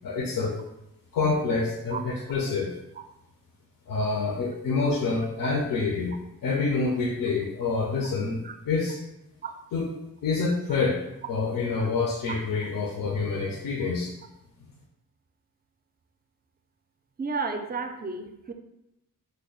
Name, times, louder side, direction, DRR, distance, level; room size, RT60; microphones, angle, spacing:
voice 1, 0.0-0.6 1.1-2.7 3.9-6.2 6.4-9.0 9.7-9.9 10.2-11.0 11.3-14.1, left 4 dB, 80° left, -1 dB, 0.5 m, -27 dB
voice 2, 17.2-18.5, right 4 dB, 30° right, 6 dB, 0.3 m, -32 dB
3.3 x 2.0 x 3.7 m, 0.88 s
cardioid pair, 75°, 34 cm